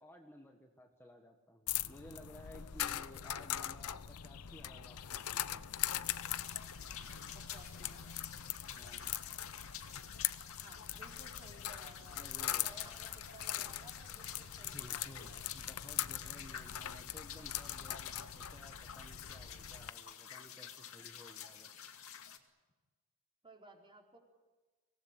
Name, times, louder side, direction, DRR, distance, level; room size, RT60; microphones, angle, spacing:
voice 1, 0.0-5.7 8.6-9.1 12.1-13.2 14.7-21.8, left 1 dB, 10° left, 2 dB, 1.5 m, -56 dB
sound 1, 1.7-19.9, left 12 dB, 85° left, 0.8 m, -41 dB
sound 2, 6.1-22.4, left 8 dB, 65° left, 2.3 m, -50 dB
voice 2, 7.3-8.2 10.6-15.6 23.4-24.2, right 1 dB, 25° right, 1 dB, 4.3 m, -59 dB
25.0 x 18.5 x 9.9 m, 1.3 s
head